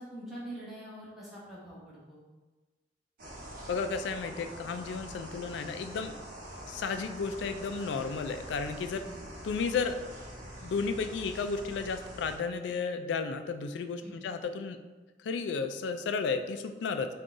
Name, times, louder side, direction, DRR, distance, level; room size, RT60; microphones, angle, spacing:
voice 1, 0.0-2.2 9.0-9.2 14.0-14.2, right 1 dB, ahead, -9 dB, 1.0 m, -44 dB
sound 1, 3.2-12.4, equal, 45° right, 0.9 m, -45 dB
voice 2, 3.7-6.1 6.7-9.0 9.4-10.0 10.6-14.8 15.2-17.1, left 5 dB, 70° left, 8 dB, 0.3 m, -33 dB
3.7 x 2.3 x 3.7 m, 1.3 s
head